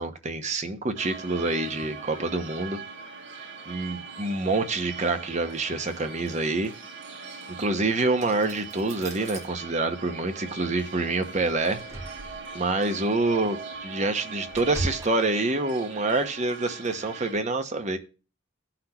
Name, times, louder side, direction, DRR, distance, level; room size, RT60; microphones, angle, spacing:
voice 1, 0.0-2.8 3.7-6.7 7.6-11.8 12.5-18.0, right 2 dB, 35° right, 7 dB, 1.0 m, -27 dB
sound 1, 0.9-17.3, right 4 dB, 60° right, 2.1 m, -41 dB
sound 2, 8.2-9.4 11.4-12.6 13.1-13.3 13.7-15.1, right 2 dB, 15° right, 1.7 m, -37 dB
16.0 x 5.9 x 2.9 m, 0.33 s
head